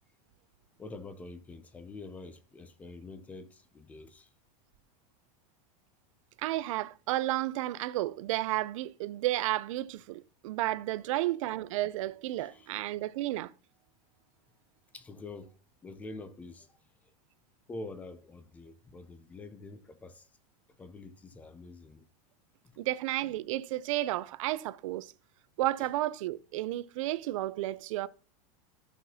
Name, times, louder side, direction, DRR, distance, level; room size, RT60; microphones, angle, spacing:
voice 1, 0.8-4.3 10.9-11.3 12.3-12.8 14.9-16.8 17.7-20.3 20.8-22.1 22.6-22.8 25.8-25.9, left 3 dB, 10° left, 0.4 m, -46 dB
voice 2, 6.4-13.5 22.8-25.1 25.6-28.1, right 16 dB, 55° right, 0.5 m, -32 dB
14.0 x 5.8 x 2.8 m
supercardioid pair, 175°, 19 cm